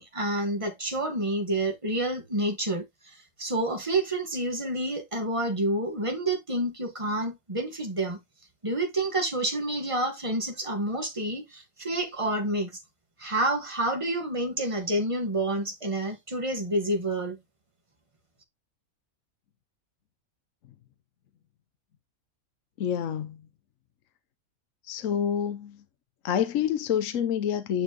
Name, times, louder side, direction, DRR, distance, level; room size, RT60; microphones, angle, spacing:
voice 1, 0.0-8.2 8.6-12.7 13.2-17.4, right 1 dB, 20° right, 1.6 m, -29 dB
voice 2, 22.8-23.4 24.9-25.8 26.2-27.8, left 9 dB, 65° left, 1.1 m, -27 dB
9.4 x 4.2 x 2.9 m
omnidirectional pair, 1.5 m